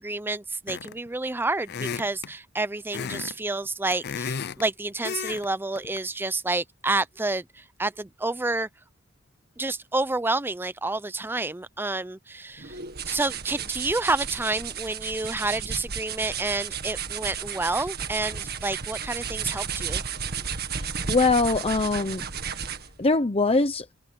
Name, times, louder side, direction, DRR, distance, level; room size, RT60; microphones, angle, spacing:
voice 1, 0.0-7.4 7.8-8.7 9.6-12.8 13.1-20.0, right 2 dB, 10° right, 0.5 m, -29 dB
sound 1, 0.7-1.1 1.7-2.3 2.9-3.3 3.7-4.6 5.0-5.5 5.8-6.0, left 6 dB, 50° left, 0.6 m, -33 dB
sound 2, 12.6-23.0, right 7 dB, 50° right, 1.8 m, -33 dB
voice 2, 20.8-22.3 23.0-23.9, left 3 dB, 30° left, 0.9 m, -23 dB
head